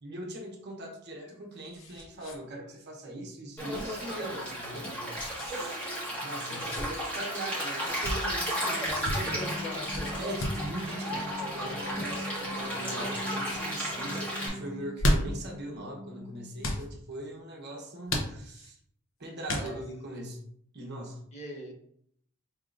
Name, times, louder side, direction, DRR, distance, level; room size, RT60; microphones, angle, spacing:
voice 1, 0.0-5.0 5.4-5.8 6.2-9.6 10.2-18.8 19.2-20.4 20.7-21.2, right 1 dB, 50° right, 0 dB, 0.9 m, -41 dB
sound 1, 1.0-2.4 2.7-2.8 3.7-4.0 5.1-5.5 6.4-6.9 7.8-8.2 8.8-9.2 9.9-10.7 11.8-12.1 12.8-13.2 13.4-13.6 14.7-15.5 16.6-16.9 18.1-18.7 19.5-20.0, equal, 60° left, 0.8 m, -33 dB
Stream, 3.6-14.5, equal, 5° left, 1.4 m, -34 dB
voice 2, 6.5-6.9 8.6-10.2 19.5-19.8 21.3-21.7, left 1 dB, 30° left, -2 dB, 1.0 m, -41 dB
sound 2, 9.0-16.8, left 1 dB, 80° left, 1.5 m, -42 dB
4.8 x 3.7 x 2.5 m, 0.68 s
head